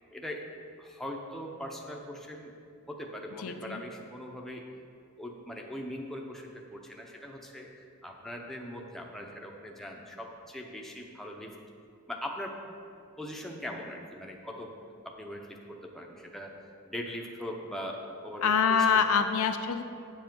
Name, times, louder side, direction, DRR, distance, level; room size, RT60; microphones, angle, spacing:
voice 1, 0.1-0.5 0.8-2.5 2.9-4.7 5.2-11.6 12.1-12.6 13.2-16.5 16.9-19.0, equal, ahead, 0 dB, 0.7 m, -41 dB
voice 2, 3.4-3.8 18.4-19.8, left 6 dB, 70° left, 7 dB, 0.5 m, -25 dB
8.6 x 7.2 x 4.5 m, 2.4 s
head